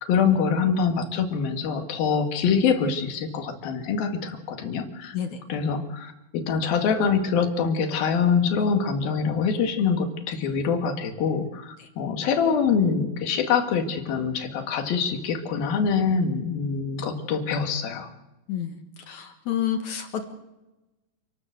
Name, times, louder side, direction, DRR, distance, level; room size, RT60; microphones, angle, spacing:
voice 1, 0.1-5.2 5.5-18.1, left 6 dB, 85° left, 6 dB, 3.7 m, -24 dB
voice 2, 19.1-20.2, left 9 dB, 60° left, 6 dB, 2.7 m, -29 dB
28.0 x 12.5 x 8.0 m, 1.0 s
omnidirectional pair, 4.1 m